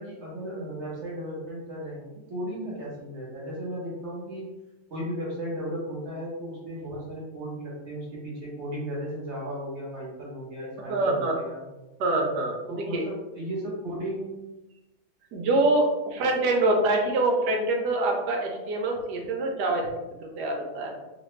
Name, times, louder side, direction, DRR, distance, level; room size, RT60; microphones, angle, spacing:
voice 1, 0.0-4.5 4.9-11.6 12.7-14.4, equal, 50° right, -5 dB, 1.0 m, -35 dB
voice 2, 10.9-11.4 12.0-13.0 15.3-19.9 20.2-20.9, right 2 dB, 85° right, 1 dB, 1.3 m, -25 dB
3.0 x 2.5 x 3.1 m, 1.0 s
omnidirectional pair, 1.7 m